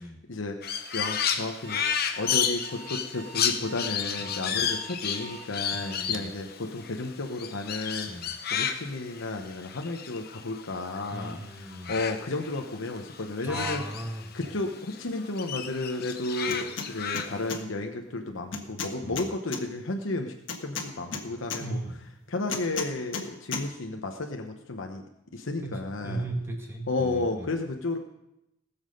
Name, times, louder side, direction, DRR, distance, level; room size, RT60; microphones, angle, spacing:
voice 1, 0.0-1.8 2.2-11.4 11.6-13.8 14.3-20.3 20.6-21.8 22.3-25.0 25.3-26.3 26.9-28.0, left 2 dB, 90° left, 3 dB, 1.0 m, -33 dB
Crow, 0.6-11.3 11.6-14.6 14.9-17.6, left 8 dB, 55° left, 0.9 m, -32 dB
Alarm, 1.6-6.3, right 1 dB, 70° right, 0.9 m, -46 dB
voice 2, 4.2-4.7 5.7-6.3 8.1-8.3 11.1-11.9 13.4-14.3 19.0-19.3 21.6-22.0 25.6-27.5, right 1 dB, 15° right, 1 dB, 2.0 m, -37 dB
sound 1, 16.5-16.9 17.1-17.6 18.5-19.6 20.5-21.6 22.5-23.3 23.5-23.6, left 5 dB, 70° left, 1.5 m, -33 dB
18.5 x 7.2 x 5.3 m, 0.85 s
head